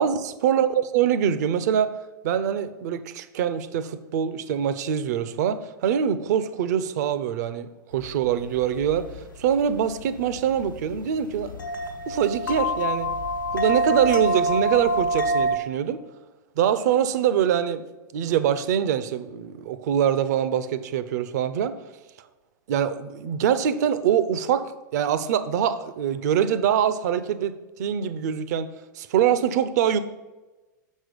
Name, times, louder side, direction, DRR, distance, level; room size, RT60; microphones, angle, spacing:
voice 1, 0.0-1.9 2.2-9.1 9.4-11.6 12.1-13.1 13.5-16.0 16.6-17.8 18.1-21.8 22.7-28.7 28.9-30.0, right 9 dB, 55° right, 13 dB, 0.6 m, -24 dB
sound 1, 7.9-15.6, right 1 dB, 90° left, 1.0 m, -27 dB
6.3 x 6.1 x 5.2 m, 1.1 s
figure-of-eight pair, 100°, 10 cm